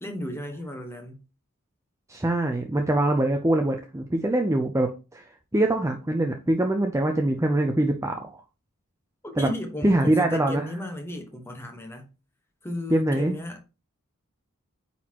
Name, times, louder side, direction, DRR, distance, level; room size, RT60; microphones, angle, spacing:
voice 1, 0.0-1.2 9.2-12.1 12.6-13.6, left 1 dB, 10° left, 1.2 m, -35 dB
voice 2, 2.1-5.3 5.5-8.4 9.4-9.5 9.8-10.6 12.9-13.4, right 1 dB, 15° right, 0.5 m, -23 dB
9.0 x 4.2 x 2.9 m
head